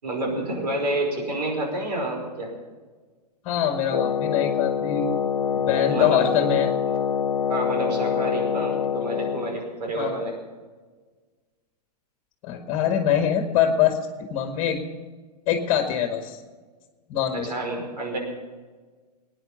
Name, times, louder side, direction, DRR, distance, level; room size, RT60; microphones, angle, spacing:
voice 1, 0.0-2.5 5.9-6.2 7.5-10.4 17.3-18.2, right 1 dB, 75° right, 1 dB, 5.5 m, -29 dB
voice 2, 3.4-5.1 5.7-6.7 10.0-10.3 12.4-14.0 14.3-14.8 15.5-16.4 17.1-17.5, left 9 dB, 40° left, 5 dB, 1.9 m, -23 dB
Wind instrument woodwind instrument, 3.9-9.6, left 7 dB, 90° left, 0.7 m, -25 dB
20.0 x 10.0 x 5.7 m, 1.4 s
hypercardioid pair, 110°, 21 cm